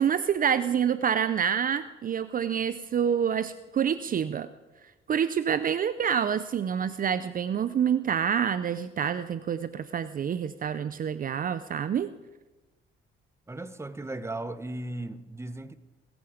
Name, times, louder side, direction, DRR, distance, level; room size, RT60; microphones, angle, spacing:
voice 1, 0.0-4.5 5.1-12.1, right 8 dB, 45° right, 14 dB, 0.5 m, -27 dB
voice 2, 13.5-15.8, right 2 dB, 15° right, 13 dB, 1.0 m, -36 dB
17.0 x 15.0 x 5.0 m, 1.1 s
cardioid pair, 90°, 20 cm